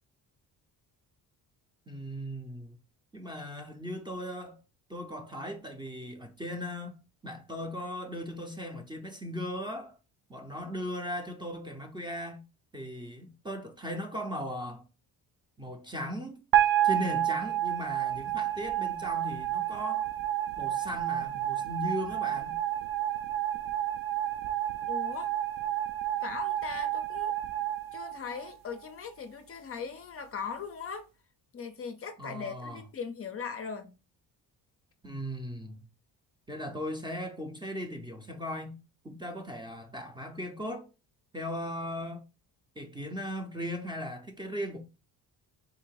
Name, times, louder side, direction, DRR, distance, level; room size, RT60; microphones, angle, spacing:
voice 1, 1.9-2.8 3.1-4.6 4.9-7.0 7.2-10.0 10.3-12.4 12.7-14.8 15.6-16.4 16.8-20.1 20.6-22.6 32.2-32.8 35.0-35.8 36.5-38.8 39.0-40.8 41.3-42.2 42.8-44.8, equal, 10° right, 0.5 m, -38 dB
sound 1, 16.5-28.8, right 12 dB, 65° right, 0.6 m, -30 dB
voice 2, 24.9-25.3 26.2-27.4 27.9-31.1 31.5-33.9, left 5 dB, 35° left, 0.5 m, -39 dB
3.7 x 2.5 x 4.6 m
cardioid pair, 135°, 39 cm